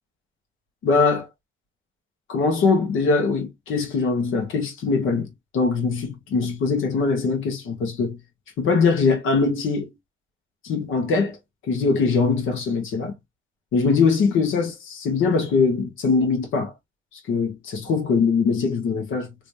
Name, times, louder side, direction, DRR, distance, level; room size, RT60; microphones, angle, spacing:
voice 1, 0.8-1.3 2.3-8.2 8.6-9.9 10.6-11.4 11.7-13.1 13.7-16.7 17.3-19.3, left 4 dB, 80° left, 1.5 m, -22 dB
3.5 x 3.1 x 2.6 m
cardioid pair, 90°, 20 cm